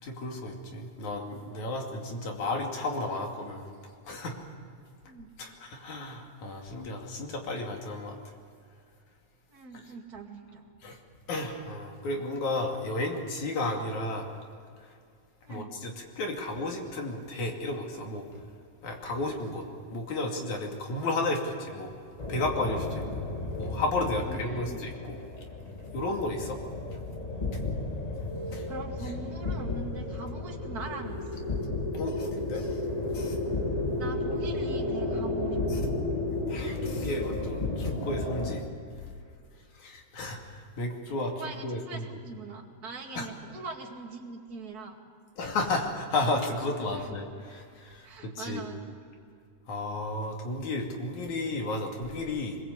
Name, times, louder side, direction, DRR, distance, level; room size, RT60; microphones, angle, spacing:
voice 1, 0.0-3.7 4.1-4.4 5.4-8.3 9.7-9.8 10.8-11.0 11.3-14.3 15.5-18.4 18.8-19.7 19.9-21.9 22.3-23.3 23.5-25.2 25.6-26.6 27.5-27.6 28.5-28.7 31.9-32.8 33.1-33.4 35.7-35.8 36.5-38.6 39.7-41.3 41.6-42.1 43.2-43.3 45.4-48.6 49.7-52.6, left 2 dB, 80° left, 1 dB, 3.9 m, -33 dB
voice 2, 9.5-10.7 15.5-15.7 24.3-24.8 28.7-31.5 34.0-35.6 41.2-45.0 46.9-47.1 48.0-49.0, right 3 dB, 35° right, 1 dB, 2.5 m, -42 dB
sound 1, 22.2-38.6, left 2 dB, 15° left, 2.1 m, -33 dB
23.5 x 21.5 x 8.2 m, 2.3 s
omnidirectional pair, 3.3 m